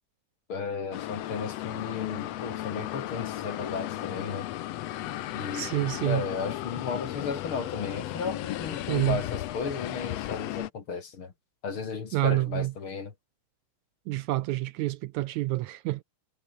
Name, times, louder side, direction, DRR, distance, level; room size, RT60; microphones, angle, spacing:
voice 1, 0.5-4.5 5.3-11.3 11.6-13.1, left 5 dB, 45° left, 3.1 m, -34 dB
sound 1, 0.9-10.7, left 14 dB, 65° left, 1.8 m, -35 dB
voice 2, 5.5-6.2 8.9-9.2 12.1-12.7 14.1-16.0, right 17 dB, 75° right, 1.9 m, -28 dB
omnidirectional pair, 3.6 m